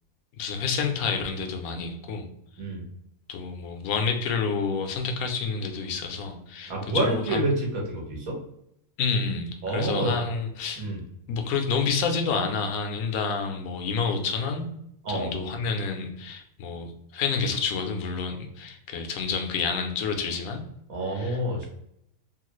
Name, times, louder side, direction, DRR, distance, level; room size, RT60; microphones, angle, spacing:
voice 1, 0.4-2.3 3.3-7.4 9.0-10.9 11.3-14.6 15.1-20.6 21.1-21.7, left 5 dB, 90° left, 5 dB, 1.1 m, -29 dB
voice 2, 6.7-8.4 9.6-10.1 10.8-11.0 15.0-15.3 20.9-21.7, right 1 dB, 75° right, -2 dB, 1.4 m, -28 dB
3.2 x 2.3 x 3.0 m, 0.77 s
omnidirectional pair, 1.5 m